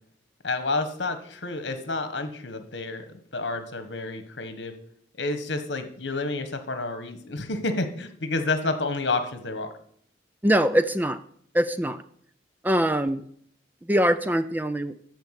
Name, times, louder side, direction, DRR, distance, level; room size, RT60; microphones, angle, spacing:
voice 1, 0.4-3.1 3.3-4.7 5.2-9.7, left 3 dB, 75° left, 9 dB, 1.4 m, -29 dB
voice 2, 10.4-11.2 11.5-12.0 12.6-13.2 13.9-14.9, equal, 10° right, 12 dB, 0.4 m, -23 dB
13.5 x 4.6 x 8.1 m, 0.65 s
head